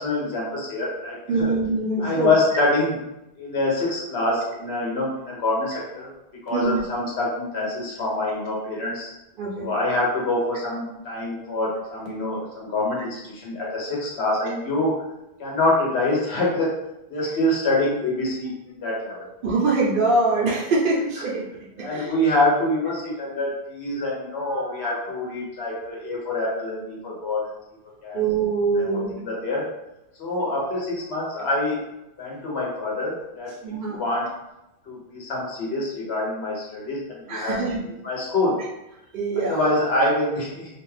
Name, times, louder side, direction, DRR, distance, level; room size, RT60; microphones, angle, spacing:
voice 1, 0.0-1.5 2.0-3.0 3.4-6.1 6.4-9.1 9.6-14.9 15.4-16.7 17.1-19.3 21.8-27.5 28.0-28.2 28.8-29.6 30.2-31.8 32.2-33.5 33.9-34.3 34.9-37.5 37.8-38.6 39.5-40.7, left 2 dB, 90° left, -4 dB, 1.1 m, -25 dB
voice 2, 1.3-2.3 6.5-6.8 9.4-9.7 19.4-21.5 21.8-22.1 28.1-29.2 33.6-34.0 37.3-37.8 39.1-39.6, right 3 dB, 60° right, -5 dB, 0.7 m, -23 dB
2.5 x 2.3 x 3.1 m, 0.91 s
omnidirectional pair, 1.1 m